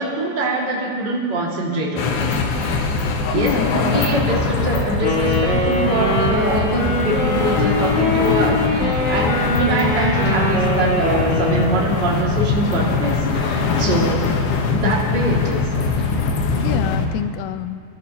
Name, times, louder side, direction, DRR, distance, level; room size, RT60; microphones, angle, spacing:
voice 1, 0.0-2.8 3.3-14.3 14.7-15.7, right 2 dB, 40° right, -4 dB, 1.6 m, -23 dB
sound 1, 2.0-17.1, left 4 dB, 70° left, 2.5 m, -22 dB
voice 2, 3.3-3.8 8.8-9.0 13.9-14.1 16.6-17.8, left 12 dB, 85° left, 10 dB, 2.5 m, -27 dB
Wind instrument woodwind instrument, 5.0-12.0, left 1 dB, 45° left, 3.5 m, -22 dB
26.0 x 13.5 x 2.9 m, 2.3 s
omnidirectional pair, 5.6 m